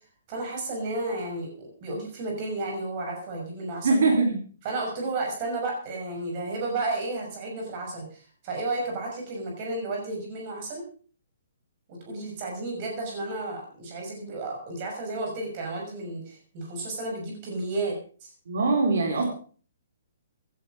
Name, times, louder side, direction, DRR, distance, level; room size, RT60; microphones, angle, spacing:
voice 1, 0.3-4.0 4.6-10.9 11.9-18.0 18.2-18.3, right 2 dB, 25° right, 0 dB, 6.1 m, -32 dB
voice 2, 3.8-4.4 18.5-19.2, right 3 dB, 65° right, 2 dB, 4.3 m, -22 dB
16.0 x 11.5 x 5.2 m, 0.41 s
hypercardioid pair, 170°, 0 cm